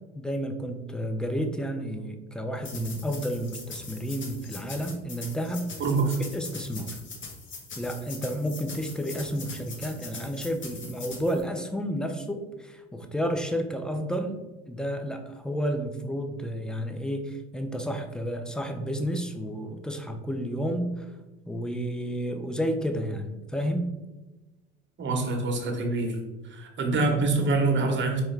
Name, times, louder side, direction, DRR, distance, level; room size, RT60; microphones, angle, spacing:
voice 1, 0.1-5.7 6.3-7.0 7.8-21.1 21.5-23.9, equal, ahead, 5 dB, 0.4 m, -31 dB
sound 1, 2.6-11.4, left 4 dB, 35° left, 1.1 m, -42 dB
voice 2, 5.8-6.2 25.0-26.2 26.5-28.2, right 3 dB, 35° right, 3 dB, 1.0 m, -25 dB
4.4 x 2.9 x 3.2 m, 1.1 s
hypercardioid pair, 70°, 34 cm